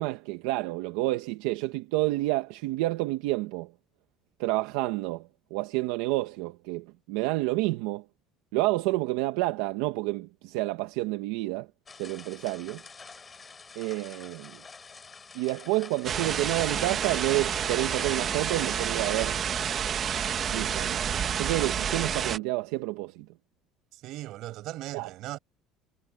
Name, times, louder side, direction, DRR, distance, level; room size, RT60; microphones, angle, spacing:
voice 1, 0.0-3.7 4.4-8.1 8.5-11.7 12.0-12.8 13.7-14.6 15.3-19.4 20.5-21.0 21.3-23.2 24.9-25.1, right 19 dB, 85° right, 1.4 m, -29 dB
sound 1, 11.9-18.9, left 5 dB, 20° left, 4.3 m, -48 dB
sound 2, 16.0-22.4, right 8 dB, 30° right, 1.1 m, -29 dB
voice 2, 23.9-25.4, right 16 dB, 50° right, 6.3 m, -38 dB
cardioid pair, 160°, 0 cm